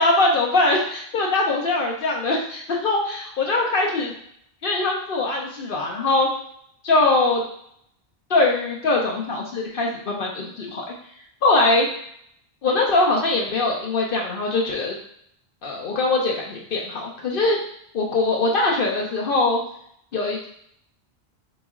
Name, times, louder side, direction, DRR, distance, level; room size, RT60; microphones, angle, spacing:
voice 1, 0.0-4.1 4.6-6.3 6.8-7.4 8.3-10.9 11.4-11.9 12.6-14.9 15.6-17.6 17.9-19.6 20.1-20.5, left 2 dB, 65° left, -1 dB, 0.8 m, -22 dB
3.9 x 3.0 x 3.6 m, 0.69 s
omnidirectional pair, 1.0 m